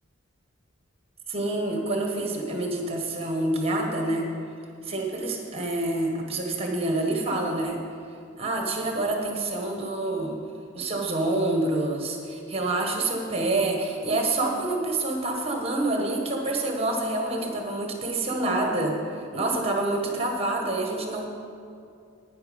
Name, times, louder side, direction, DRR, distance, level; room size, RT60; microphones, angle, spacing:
voice 1, 1.3-4.3 4.8-7.8 8.4-10.4 10.7-21.3, right 2 dB, 30° right, 2 dB, 1.3 m, -27 dB
10.5 x 9.7 x 5.2 m, 2.5 s
head